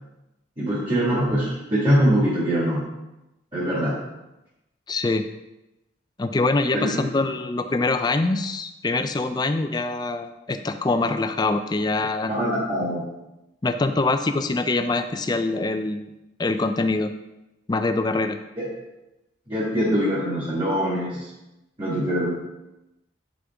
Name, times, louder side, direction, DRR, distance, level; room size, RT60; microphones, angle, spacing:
voice 1, 0.6-2.8 3.5-3.9 6.7-7.0 12.2-13.1 18.6-18.7 19.5-21.3 21.8-22.3, equal, 25° right, -7 dB, 1.7 m, -23 dB
voice 2, 4.9-5.2 6.2-12.3 12.8-12.9 13.6-16.1 16.4-17.1 17.7-18.4, left 3 dB, 20° left, 8 dB, 0.3 m, -24 dB
8.3 x 5.0 x 3.5 m, 0.95 s
head